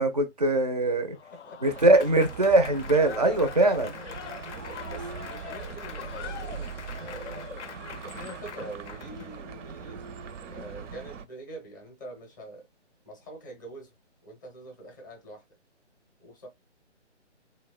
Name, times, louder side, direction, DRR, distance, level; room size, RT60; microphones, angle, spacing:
voice 1, 0.0-1.2 1.6-4.0, right 2 dB, 35° right, 0.4 m, -22 dB
Applause / Crowd, 1.1-9.3, left 8 dB, 70° left, 0.5 m, -42 dB
sound 1, 1.6-11.2, right 6 dB, 85° right, 0.5 m, -41 dB
voice 2, 4.5-7.6 8.0-10.0 10.5-12.7 13.1-13.9 14.2-15.4 16.2-16.5, right 1 dB, 15° left, 0.5 m, -44 dB
2.9 x 2.1 x 2.2 m
figure-of-eight pair, 150°, 36 cm